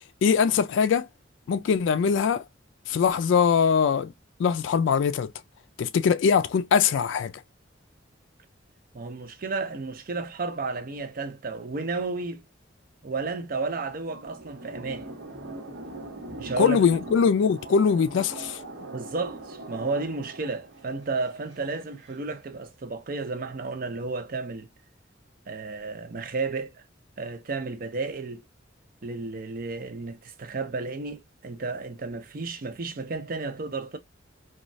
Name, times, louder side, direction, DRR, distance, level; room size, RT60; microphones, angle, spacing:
voice 1, 0.2-1.1 1.5-2.4 2.9-4.1 4.4-5.3 5.8-7.3 16.6-18.6, left 6 dB, 75° left, 0.3 m, -22 dB
voice 2, 8.9-12.4 13.0-15.1 16.4-16.8 18.9-24.7 25.5-26.8 27.2-28.4 29.0-34.0, right 3 dB, 50° right, 0.5 m, -32 dB
sound 1, 13.8-22.1, right 2 dB, 90° right, 1.0 m, -42 dB
3.0 x 2.3 x 2.5 m
head